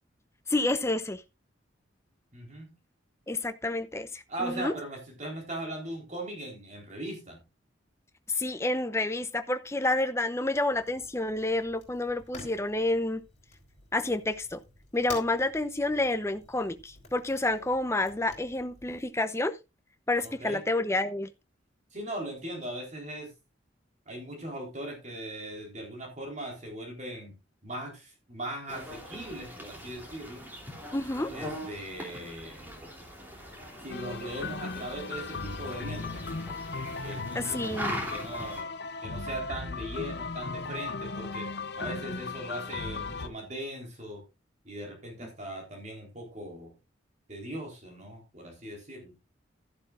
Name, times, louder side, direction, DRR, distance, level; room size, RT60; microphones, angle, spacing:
voice 1, 0.5-1.2 3.3-4.7 8.3-13.2 13.9-14.6 14.9-19.6 20.1-21.3 30.9-31.3 37.3-38.0, left 2 dB, 15° left, 0.7 m, -29 dB
voice 2, 2.3-2.7 4.3-7.4 20.2-20.6 21.9-23.3 24.1-27.3 27.6-30.4 31.3-32.9 33.8-36.5 37.0-38.7 39.0-41.5 41.8-44.2 44.6-46.7 47.3-49.1, right 1 dB, 35° right, 3.9 m, -39 dB
Fire, 10.7-19.1, left 3 dB, 35° left, 4.2 m, -50 dB
sound 1, 28.7-38.6, equal, 10° right, 3.1 m, -41 dB
sound 2, 33.9-43.3, left 4 dB, 55° left, 0.7 m, -37 dB
12.5 x 11.0 x 2.5 m
head